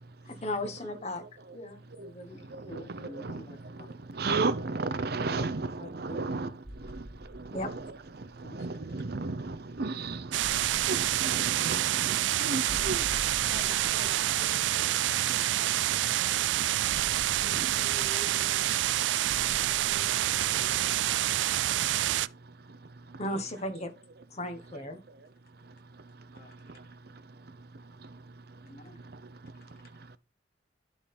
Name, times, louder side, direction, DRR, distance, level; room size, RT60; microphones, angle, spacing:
voice 1, 0.3-1.2 1.5-3.9 5.3-5.5 5.8-5.9 7.5-7.7 8.4-8.6 23.2-23.9 24.3-25.0 26.3-26.5 28.7-29.0, left 1 dB, 40° left, 1.4 m, -38 dB
voice 2, 4.2-6.5 7.6-7.8 8.5-10.2 10.9-13.0, right 3 dB, 60° right, 0.7 m, -32 dB
sound 1, 6.6-21.1, equal, 10° right, 1.7 m, -48 dB
sound 2, 10.3-22.3, right 13 dB, 85° right, 0.3 m, -27 dB
voice 3, 13.4-14.6 17.3-18.3 19.1-21.2, equal, 60° left, 2.1 m, -48 dB
11.5 x 3.9 x 4.3 m
head